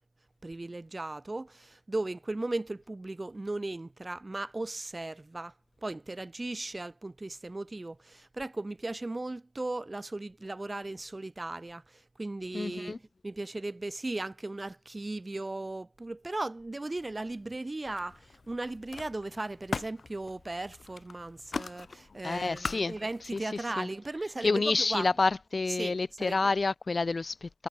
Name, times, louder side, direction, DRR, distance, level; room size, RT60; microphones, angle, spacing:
voice 1, 0.4-5.5 5.8-13.0 13.2-25.1 25.8-26.5, right 2 dB, 35° right, 2.6 m, -37 dB
voice 2, 12.5-13.0 22.2-23.0 23.3-23.9 24.4-27.7, left 3 dB, 60° left, 2.4 m, -29 dB
Camera, 16.9-17.6 17.9-23.4, left 4 dB, 85° left, 2.2 m, -42 dB
wide cardioid pair, 90°, 0 cm